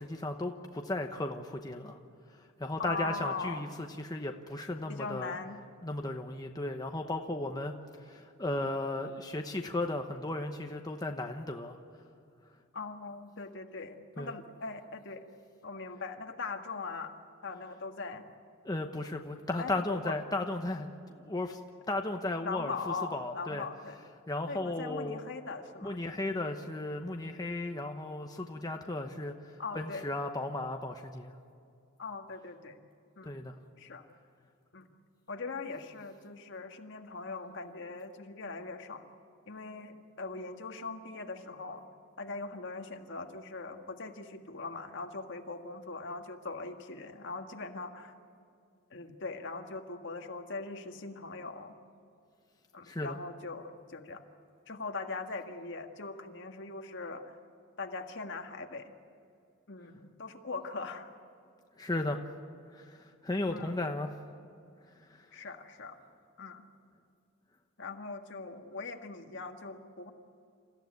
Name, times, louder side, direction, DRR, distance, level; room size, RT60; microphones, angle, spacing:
voice 1, 0.0-2.0 2.4-5.3 5.8-7.7 8.0-11.8 14.2-14.3 18.6-21.6 21.9-23.7 24.3-25.2 25.8-31.3 33.2-33.6 52.8-53.2 61.8-62.2 62.7-64.2 65.1-65.3, left 2 dB, 20° left, 3 dB, 0.9 m, -35 dB
voice 2, 2.8-3.7 4.9-5.6 12.7-15.2 15.6-17.2 17.4-18.3 19.6-20.2 22.4-24.0 24.5-26.0 29.6-30.1 32.0-32.8 33.2-33.4 33.8-34.0 34.7-34.9 35.3-39.0 39.5-41.9 42.2-48.1 48.9-51.8 52.7-54.2 54.7-57.4 57.8-58.9 59.7-61.1 63.5-63.8 65.3-66.0 66.4-66.6 67.8-70.1, left 3 dB, 60° left, 4 dB, 1.7 m, -41 dB
28.5 x 15.0 x 9.4 m, 2.5 s
head